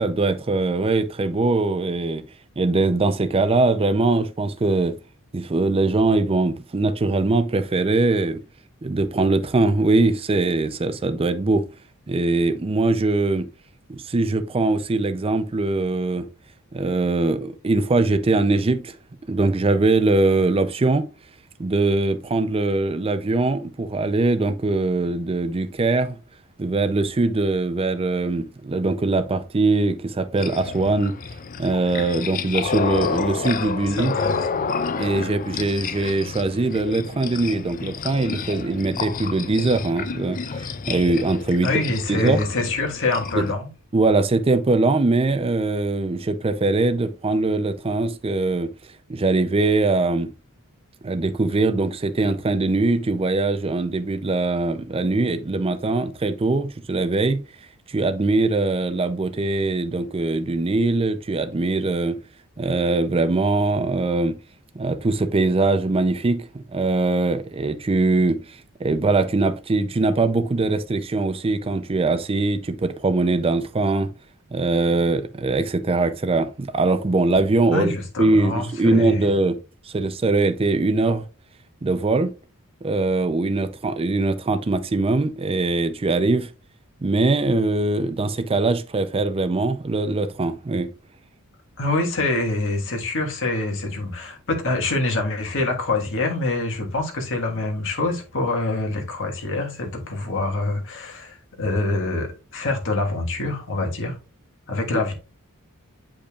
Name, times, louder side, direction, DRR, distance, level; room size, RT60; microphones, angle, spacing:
voice 1, 0.0-2.2 2.6-5.0 5.3-8.4 8.8-11.6 12.1-13.5 13.9-16.3 16.7-18.9 19.3-21.1 21.6-26.2 26.6-31.2 31.6-34.1 35.0-41.7 42.1-42.4 43.3-43.5 43.9-48.7 49.1-50.3 51.0-57.4 57.9-62.2 62.6-64.4 64.7-74.1 74.5-77.9 78.2-79.6 79.9-81.2 81.8-82.3 82.8-86.5 87.0-90.9 104.9-105.0, right 3 dB, 25° right, 0.5 m, -22 dB
sound 1, 30.4-43.5, left 5 dB, 40° left, 0.5 m, -30 dB
voice 2, 33.8-34.7 41.6-43.7 77.7-79.3 91.8-104.2 104.7-105.1, left 2 dB, 60° left, 1.5 m, -25 dB
8.5 x 5.1 x 2.4 m
head